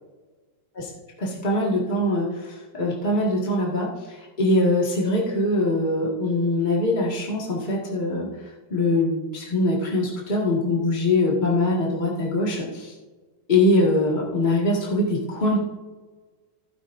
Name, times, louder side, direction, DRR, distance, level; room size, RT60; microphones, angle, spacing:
voice 1, 1.2-8.3 8.7-12.9 13.5-15.6, left 1 dB, 25° left, -4 dB, 2.0 m, -23 dB
16.5 x 9.5 x 2.6 m, 1.3 s
omnidirectional pair, 2.0 m